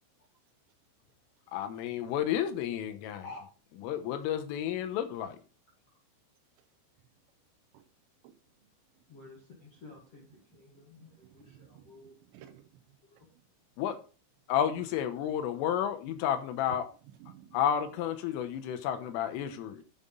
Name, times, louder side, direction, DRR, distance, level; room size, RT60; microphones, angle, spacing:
voice 1, 1.5-3.2 3.8-5.4 13.8-14.0 14.5-16.9 17.5-19.8, left 9 dB, 85° left, 3.6 m, -31 dB
voice 2, 9.1-10.2 10.5-12.1 13.2-13.3, left 3 dB, 45° left, 2.0 m, -50 dB
voice 3, 11.2-12.8 16.7-16.8 17.2-17.6, right 11 dB, 75° right, 2.9 m, -53 dB
11.0 x 5.9 x 3.9 m
omnidirectional pair, 5.8 m